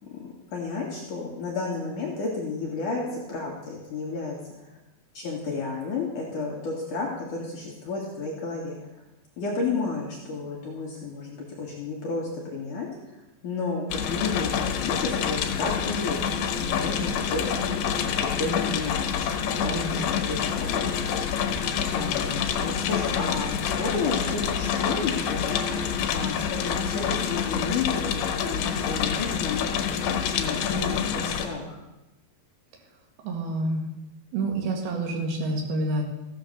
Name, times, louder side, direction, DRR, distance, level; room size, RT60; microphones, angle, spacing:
voice 1, 0.5-4.4 5.1-8.8 9.4-12.9 13.4-16.2 16.6-17.5 17.9-21.0 21.9-25.6 26.1-29.7 30.4-31.8, left 4 dB, 55° left, -3 dB, 3.3 m, -32 dB
sound 1, 13.9-31.5, left 7 dB, 85° left, 3.2 m, -27 dB
voice 2, 19.6-20.1 33.2-33.8 34.3-36.0, right 2 dB, 75° right, 1 dB, 3.9 m, -28 dB
15.0 x 9.2 x 6.8 m, 0.97 s
omnidirectional pair, 4.5 m